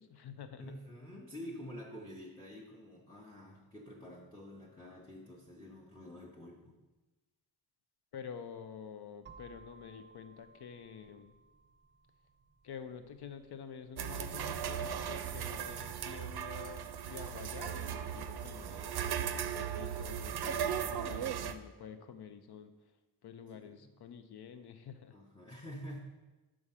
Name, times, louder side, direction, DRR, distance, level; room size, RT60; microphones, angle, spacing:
voice 1, 0.0-0.6 8.1-11.3 12.6-22.7 23.2-25.2, left 7 dB, 75° left, 9 dB, 0.6 m, -48 dB
voice 2, 0.6-6.8 15.4-15.8 23.5-23.9 25.1-26.0, equal, 10° left, -3 dB, 0.7 m, -48 dB
sound 1, 9.3-17.1, right 4 dB, 30° right, 0.5 m, -62 dB
sound 2, 14.0-21.5, right 8 dB, 70° right, 0.5 m, -37 dB
6.3 x 4.7 x 5.6 m, 1.2 s
wide cardioid pair, 155°, 40 cm